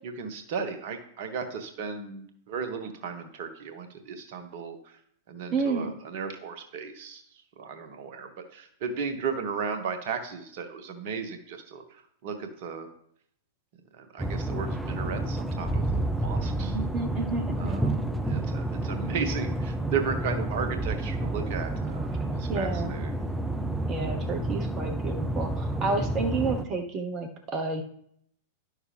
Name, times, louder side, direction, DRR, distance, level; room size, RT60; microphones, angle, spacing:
voice 1, 0.0-4.9 5.3-12.9 13.9-16.8 17.6-23.1, right 6 dB, 50° right, 7 dB, 1.4 m, -35 dB
voice 2, 5.5-5.9 16.7-17.8 22.5-22.9 23.9-27.8, right 3 dB, 30° right, 5 dB, 1.2 m, -30 dB
sound 1, 14.2-26.6, right 1 dB, 5° right, 0.7 m, -30 dB
11.0 x 6.3 x 3.5 m, 0.68 s
figure-of-eight pair, 100°, 0 cm